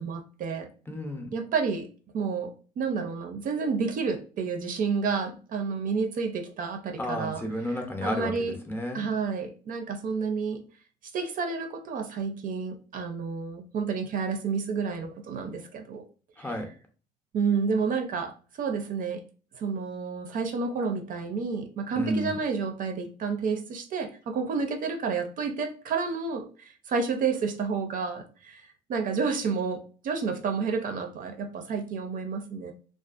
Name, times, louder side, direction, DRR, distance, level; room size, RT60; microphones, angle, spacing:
voice 1, 0.0-0.7 1.3-1.9 2.1-7.4 8.0-8.5 8.9-10.6 11.1-16.0 16.4-16.5 17.3-19.2 19.5-26.5 26.9-32.7, right 5 dB, 55° right, 6 dB, 0.5 m, -30 dB
voice 2, 0.9-1.3 7.0-8.3 8.7-9.0 16.4-16.7 22.0-22.4, equal, 15° left, 2 dB, 0.5 m, -31 dB
2.5 x 2.3 x 2.4 m, 0.38 s
cardioid pair, 110°, 17 cm